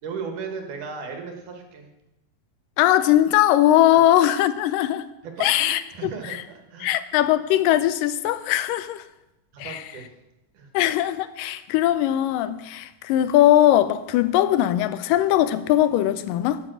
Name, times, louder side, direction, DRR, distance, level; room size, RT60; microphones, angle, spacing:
voice 1, 0.0-1.9 3.9-4.0 5.2-7.0 9.5-10.2 10.5-10.7 13.1-13.2, right 5 dB, 70° right, 2.9 m, -36 dB
voice 2, 2.8-5.1 5.4-6.1 6.8-9.0 9.6-9.8 10.7-16.6, left 13 dB, 85° left, 2.2 m, -20 dB
12.5 x 7.2 x 6.4 m
omnidirectional pair, 3.9 m